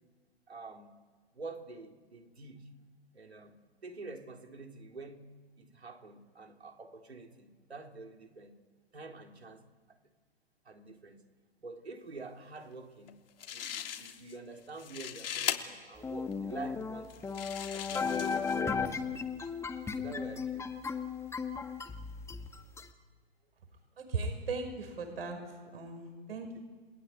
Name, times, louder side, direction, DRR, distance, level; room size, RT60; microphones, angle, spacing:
voice 1, 0.5-1.0 1.3-2.7 3.1-5.3 5.6-8.6 8.9-10.0 10.7-11.2 11.6-13.2 13.5-17.5 17.7-19.7 20.0-20.7 26.3-26.6, right 3 dB, 90° right, 3.8 m, -47 dB
sound 1, 13.1-13.2 13.4-14.4 14.7-15.6 16.3-16.4 17.1-18.6, left 9 dB, 65° left, 3.3 m, -38 dB
sound 2, 16.0-22.9, left 5 dB, 10° left, 1.7 m, -35 dB
voice 2, 24.0-25.4 25.7-26.6, right 4 dB, 70° right, 5.9 m, -37 dB
30.0 x 19.5 x 9.7 m
hypercardioid pair, 125°, 31 cm